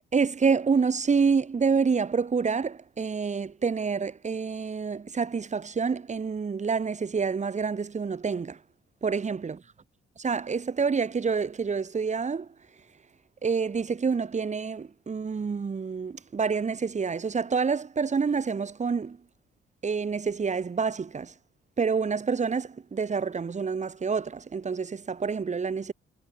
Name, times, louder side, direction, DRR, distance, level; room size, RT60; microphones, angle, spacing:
voice 1, 0.1-8.6 9.0-9.6 10.2-12.5 13.4-19.2 19.8-21.3 21.8-25.9, right 5 dB, 35° right, 4.8 m, -27 dB
cardioid pair, 90°, 20 cm